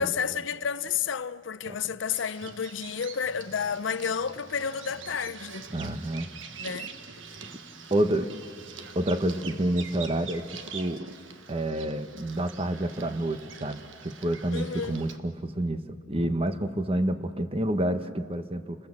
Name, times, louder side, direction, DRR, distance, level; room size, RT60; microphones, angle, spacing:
voice 1, 0.0-5.7 6.6-6.9 14.5-15.0, left 6 dB, 70° left, 0.6 m, -31 dB
Bird vocalization bird call bird song, 2.1-15.2, right 6 dB, 75° right, 1.4 m, -45 dB
sound 1, 3.2-10.6, equal, 10° right, 3.2 m, -54 dB
voice 2, 5.7-6.3 7.4-7.5 7.9-8.3 8.9-11.1 11.5-18.8, right 1 dB, 30° right, 1.1 m, -29 dB
29.5 x 20.5 x 7.6 m
head